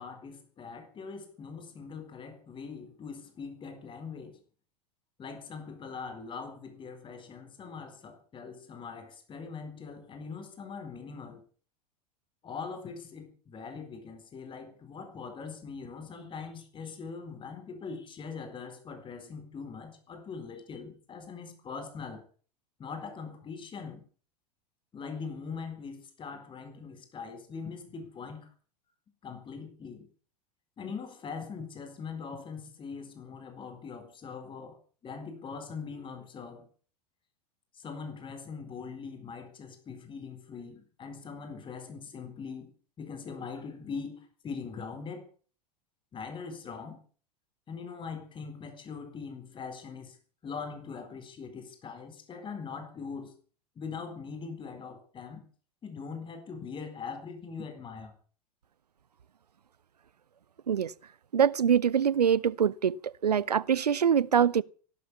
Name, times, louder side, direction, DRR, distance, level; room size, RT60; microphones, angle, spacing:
voice 1, 0.0-4.4 5.2-11.4 12.4-22.2 22.8-24.0 24.9-28.5 29.2-30.1 30.8-34.8 35.0-36.7 37.7-42.7 43.0-45.3 46.1-47.0 47.7-50.2 50.4-53.3 53.8-55.4 55.8-58.1, left 5 dB, 25° left, 4.3 m, -42 dB
voice 2, 61.3-64.6, right 8 dB, 75° right, 0.7 m, -24 dB
16.0 x 12.0 x 7.1 m
figure-of-eight pair, 85°, 20 cm